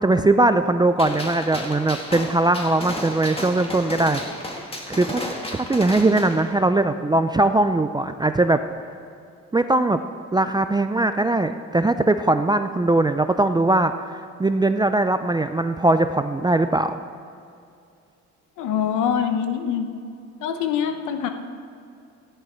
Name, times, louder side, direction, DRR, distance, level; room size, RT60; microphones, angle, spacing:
voice 1, 0.0-4.2 4.9-5.2 5.5-8.6 9.5-10.0 10.3-17.0, right 2 dB, 15° right, 9 dB, 0.4 m, -20 dB
Gunshot gunfire, 1.0-6.4, left 1 dB, 20° left, 2.2 m, -33 dB
voice 2, 18.6-19.9 20.4-21.3, left 8 dB, 90° left, 7 dB, 1.0 m, -24 dB
14.5 x 10.5 x 4.5 m, 2.5 s
cardioid pair, 80°, 30 cm